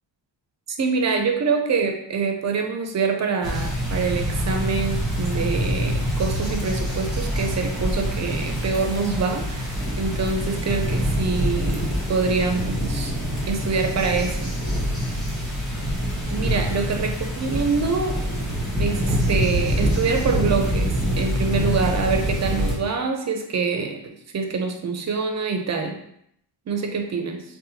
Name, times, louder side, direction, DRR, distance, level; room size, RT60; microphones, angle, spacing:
voice 1, 0.8-13.1 13.5-14.6 16.3-18.2 18.8-26.0 26.7-27.4, right 4 dB, 40° right, 4 dB, 0.4 m, -25 dB
sound 1, 3.4-22.8, equal, ahead, 0.9 m, -25 dB
2.8 x 2.1 x 2.7 m, 0.72 s
cardioid pair, 85°, 45 cm